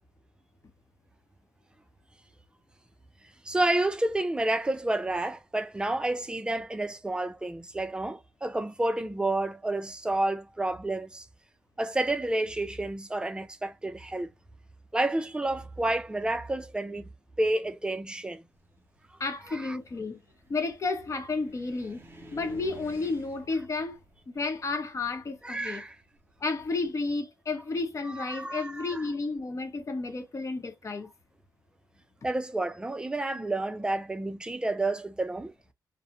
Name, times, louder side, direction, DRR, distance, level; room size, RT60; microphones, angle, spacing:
voice 1, 3.4-11.3 11.8-14.3 14.9-17.1 17.4-18.4 19.5-19.8 25.4-25.9 28.0-29.1 32.2-35.5, right 2 dB, 10° right, 0.4 m, -30 dB
Car, 18.5-26.7, equal, 30° right, 0.8 m, -53 dB
voice 2, 19.2-20.2 20.5-22.0 22.3-24.0 24.3-25.8 26.4-31.1, left 3 dB, 40° left, 0.8 m, -32 dB
2.4 x 2.0 x 2.7 m
cardioid pair, 90°, 8 cm